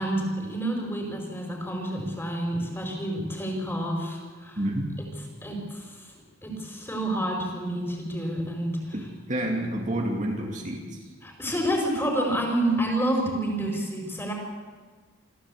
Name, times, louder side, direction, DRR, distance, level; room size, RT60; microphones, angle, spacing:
voice 1, 0.0-4.6 5.4-6.1 6.4-8.9 11.2-14.3, right 1 dB, 10° left, 1 dB, 4.8 m, -29 dB
voice 2, 4.6-5.0 8.9-11.0, right 1 dB, 40° right, 1 dB, 2.6 m, -29 dB
26.0 x 14.5 x 8.4 m, 1.4 s
head